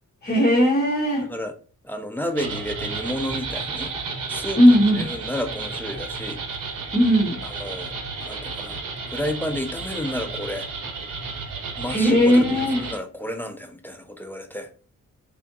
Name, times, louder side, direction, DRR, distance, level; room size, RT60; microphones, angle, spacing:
voice 1, 0.2-1.3 4.6-5.0 6.9-7.4 11.9-12.8, equal, 30° left, -6 dB, 1.1 m, -17 dB
voice 2, 1.2-1.5 1.8-3.9 4.3-6.4 7.4-8.8 9.1-10.7 11.8-14.7, left 1 dB, 5° left, 5 dB, 0.4 m, -31 dB
sound 1, 2.4-13.0, right 4 dB, 85° right, 0.8 m, -32 dB
3.5 x 3.4 x 2.6 m, 0.38 s
wide cardioid pair, 135°, 32 cm